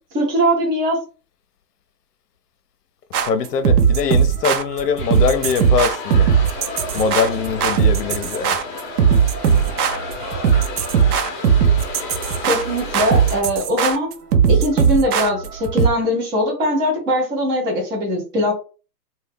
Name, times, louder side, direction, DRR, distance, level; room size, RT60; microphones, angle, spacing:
voice 1, 0.1-1.0 12.4-14.1 14.5-18.5, equal, 10° right, 0.4 m, -21 dB
sound 1, 3.1-15.9, right 7 dB, 65° right, 0.7 m, -18 dB
voice 2, 3.2-6.3 6.9-8.6, left 6 dB, 70° left, 0.7 m, -22 dB
sound 2, 5.0-13.4, left 3 dB, 30° left, 0.7 m, -32 dB
2.7 x 2.2 x 3.4 m
hypercardioid pair, 125°, 49 cm